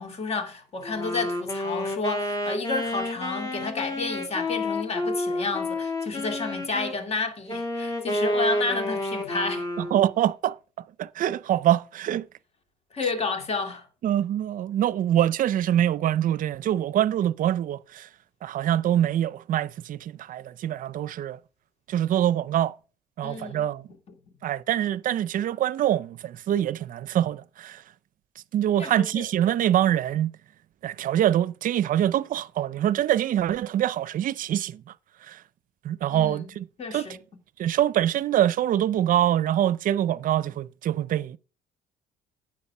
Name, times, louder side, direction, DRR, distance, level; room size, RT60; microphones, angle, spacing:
voice 1, 0.0-9.7 12.9-13.9 23.2-23.7 28.8-29.2 36.1-37.2, left 3 dB, 40° left, 2.3 m, -31 dB
Wind instrument woodwind instrument, 0.8-7.0 7.5-10.1, left 1 dB, 20° left, 2.2 m, -30 dB
voice 2, 9.8-10.6 11.0-12.3 14.0-18.1 18.4-21.4 21.9-22.7 23.2-23.8 24.4-27.8 28.5-30.3 30.8-34.8 35.3-35.4 35.8-37.1 37.6-41.4, right 11 dB, 55° right, 0.5 m, -24 dB
9.6 x 6.5 x 5.4 m
cardioid pair, 110°, 17 cm